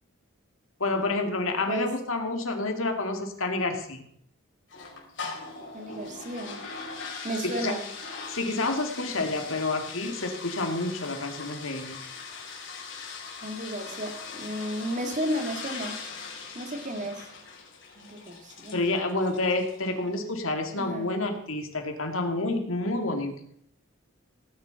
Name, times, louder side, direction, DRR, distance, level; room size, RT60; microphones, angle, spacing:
voice 1, 0.8-4.0 7.4-7.7 8.3-12.0 18.7-23.4, left 2 dB, 80° left, 4 dB, 2.5 m, -29 dB
sound 1, 4.7-20.0, left 4 dB, 60° left, 4.7 m, -41 dB
voice 2, 5.7-6.7 7.2-7.9 13.4-16.0 16.5-17.3 18.0-18.8 20.8-21.1, equal, 35° right, 5 dB, 2.2 m, -33 dB
18.5 x 9.8 x 5.8 m, 0.68 s
head